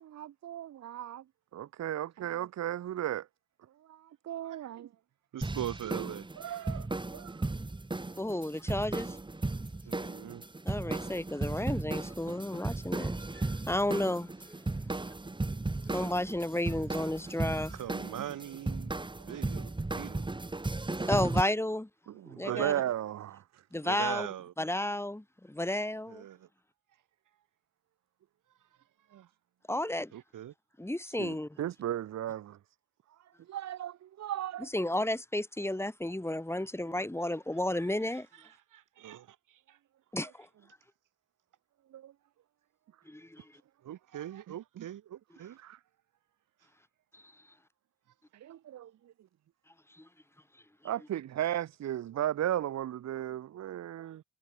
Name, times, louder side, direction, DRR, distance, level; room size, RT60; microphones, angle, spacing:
voice 1, 0.0-1.2 1.5-3.3 3.9-4.9 18.2-18.3 22.1-23.6 29.1-29.2 31.1-32.6 33.5-34.7 41.9-42.1 44.8-44.9 45.6-45.8 48.3-48.9 50.8-54.2, right 12 dB, 60° right, 0.7 m, -35 dB
voice 2, 5.3-7.5 9.9-10.4 17.7-20.3 22.4-22.9 23.7-24.5 26.1-26.5 29.1-29.3 30.1-30.5 38.1-39.8 43.8-45.6, right 11 dB, 80° right, 4.8 m, -42 dB
sound 1, 5.4-21.4, right 2 dB, 15° right, 2.2 m, -35 dB
voice 3, 8.2-9.2 10.7-14.3 15.9-17.7 21.1-21.9 22.3-22.7 23.7-24.3 24.6-26.2 29.7-30.1 30.8-31.5 34.7-38.3 40.1-40.5 43.1-43.4, left 1 dB, 10° left, 4.0 m, -32 dB
cardioid pair, 105°, 31 cm